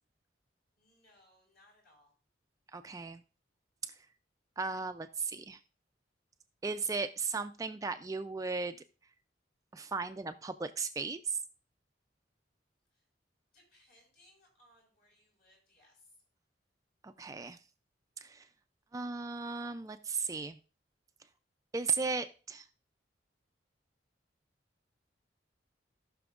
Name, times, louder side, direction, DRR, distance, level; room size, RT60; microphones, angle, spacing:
voice 1, 0.8-2.1 12.9-13.0 13.5-16.1, left 1 dB, 55° left, -1 dB, 5.0 m, -65 dB
voice 2, 2.7-3.2 4.6-5.6 6.6-8.8 9.7-11.4 17.0-17.6 18.2-18.5 18.9-20.6 21.7-22.7, right 4 dB, 20° right, 9 dB, 0.3 m, -36 dB
17.5 x 6.0 x 2.4 m, 0.37 s
head